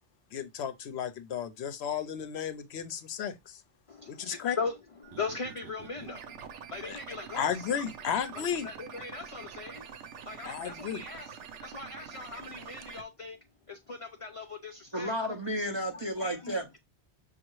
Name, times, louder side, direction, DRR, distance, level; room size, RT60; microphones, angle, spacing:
voice 1, 0.3-3.6 4.1-4.6 6.8-7.0 7.3-8.7 10.4-11.0, left 8 dB, 70° left, 0.8 m, -33 dB
voice 2, 3.9-4.7 5.0-6.3 6.7-7.7 8.3-9.9 10.2-13.4 13.7-15.1 15.9-16.6, left 4 dB, 45° left, 0.4 m, -39 dB
sound 1, 5.0-13.0, right 7 dB, 90° right, 0.9 m, -46 dB
voice 3, 14.9-16.8, equal, 30° right, 0.5 m, -32 dB
6.3 x 2.4 x 2.9 m
omnidirectional pair, 1.2 m